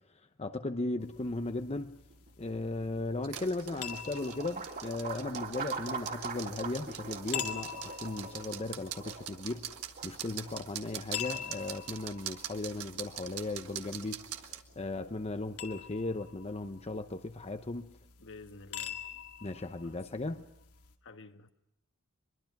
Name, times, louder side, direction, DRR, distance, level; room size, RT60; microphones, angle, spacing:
voice 1, 0.4-1.9 2.4-9.7 10.0-14.2 14.8-17.9 19.4-20.4, left 2 dB, 30° left, 0.8 m, -36 dB
sound 1, 1.0-21.0, left 9 dB, 75° left, 2.0 m, -46 dB
sound 2, 2.1-16.2, right 4 dB, 45° right, 3.0 m, -45 dB
sound 3, 3.2-14.6, right 10 dB, 75° right, 1.6 m, -44 dB
voice 2, 18.2-20.3 21.0-21.5, left 3 dB, 60° left, 1.5 m, -53 dB
24.0 x 22.5 x 6.0 m
head